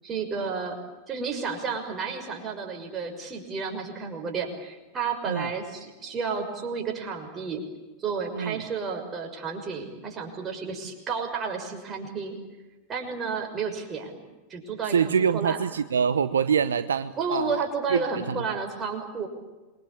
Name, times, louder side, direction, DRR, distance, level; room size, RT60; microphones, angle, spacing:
voice 1, 0.0-0.8 1.1-7.6 8.0-12.4 12.9-14.2 14.5-15.6 17.2-19.3, right 5 dB, 25° right, 3 dB, 6.2 m, -31 dB
voice 2, 14.9-17.6 17.9-18.4, right 7 dB, 70° right, 13 dB, 0.9 m, -25 dB
27.5 x 23.0 x 8.7 m, 1.2 s
figure-of-eight pair, 90°, 0 cm